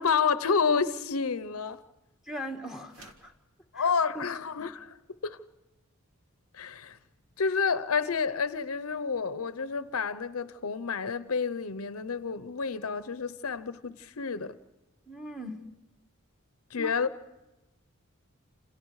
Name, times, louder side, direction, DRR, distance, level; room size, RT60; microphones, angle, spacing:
voice 1, 0.0-1.8 3.7-5.0 5.2-5.4 6.5-7.0 7.4-14.6 16.7-17.1, left 5 dB, 80° left, 0.8 m, -29 dB
voice 2, 2.3-3.3 3.7-3.9 4.1-4.3 4.6-4.7 15.1-15.6 16.8-17.1, equal, ahead, 1.6 m, -39 dB
sound 1, 2.8-3.4, right 2 dB, 70° right, 2.1 m, -54 dB
28.5 x 27.5 x 4.8 m
head